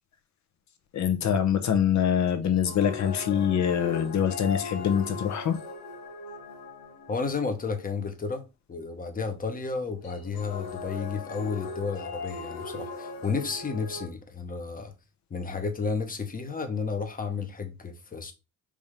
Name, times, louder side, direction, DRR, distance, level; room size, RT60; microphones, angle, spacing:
voice 1, 0.9-5.6, left 8 dB, 55° left, 1.0 m, -24 dB
sound 1, 2.4-7.5 10.0-14.1, left 4 dB, 85° left, 1.1 m, -39 dB
voice 2, 7.1-8.4 8.7-14.9 15.3-18.3, left 4 dB, 25° left, 1.1 m, -32 dB
4.9 x 2.8 x 3.7 m
cardioid pair, 90°, 35 cm